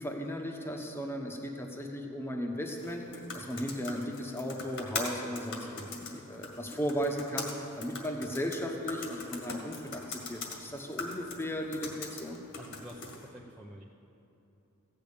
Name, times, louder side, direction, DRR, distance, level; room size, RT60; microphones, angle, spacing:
voice 1, 0.0-12.4, equal, 10° left, 2 dB, 1.2 m, -36 dB
sound 1, 2.7-13.3, left 3 dB, 55° left, 2.0 m, -42 dB
voice 2, 12.6-13.8, equal, 5° right, -5 dB, 0.8 m, -48 dB
15.5 x 6.7 x 8.7 m, 2.9 s
head